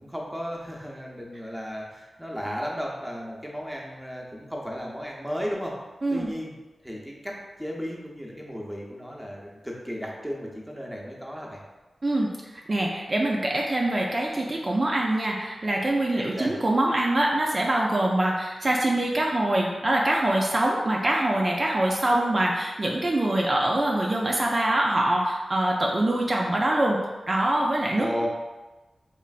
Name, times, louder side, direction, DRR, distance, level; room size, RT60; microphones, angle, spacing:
voice 1, 0.0-5.8 6.1-6.5 6.8-11.6 16.1-16.5 27.9-28.3, equal, 5° right, -3 dB, 0.7 m, -34 dB
voice 2, 12.0-12.3 12.7-28.1, right 1 dB, 45° right, -2 dB, 0.4 m, -24 dB
3.1 x 2.5 x 2.4 m, 1.2 s
cardioid pair, 40°, 0 cm